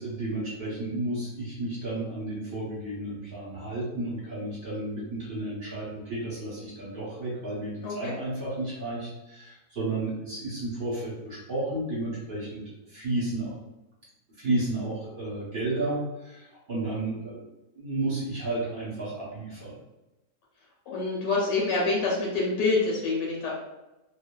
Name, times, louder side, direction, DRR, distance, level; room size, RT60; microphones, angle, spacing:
voice 1, 0.0-13.5 14.4-17.4 17.7-19.8, right 2 dB, 40° right, -8 dB, 0.8 m, -32 dB
voice 2, 7.8-8.1 20.9-23.5, left 3 dB, 80° left, -4 dB, 1.2 m, -26 dB
2.7 x 2.3 x 2.2 m, 0.99 s
omnidirectional pair, 1.9 m